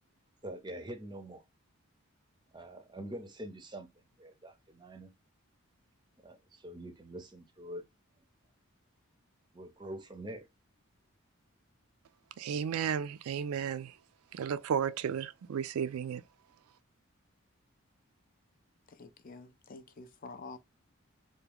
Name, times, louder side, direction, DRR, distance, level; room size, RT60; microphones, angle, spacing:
voice 1, 0.4-1.4 2.5-5.1 6.2-7.8 9.5-10.5, right 1 dB, 20° right, 0.5 m, -45 dB
voice 2, 12.4-13.9 14.3-16.2, right 7 dB, 80° right, 0.3 m, -33 dB
voice 3, 18.9-20.6, left 3 dB, 40° left, 0.4 m, -48 dB
3.4 x 2.2 x 3.4 m
head